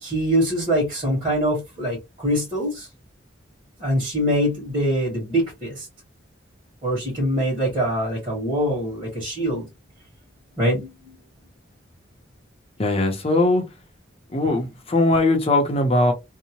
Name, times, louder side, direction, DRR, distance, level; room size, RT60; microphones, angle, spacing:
voice 1, 0.0-2.9 3.8-5.9 6.8-9.6 10.6-11.2, equal, 25° right, 1.4 m, -24 dB
voice 2, 12.8-13.7 14.3-16.1, left 2 dB, 30° left, 0.6 m, -20 dB
2.7 x 2.1 x 2.9 m
head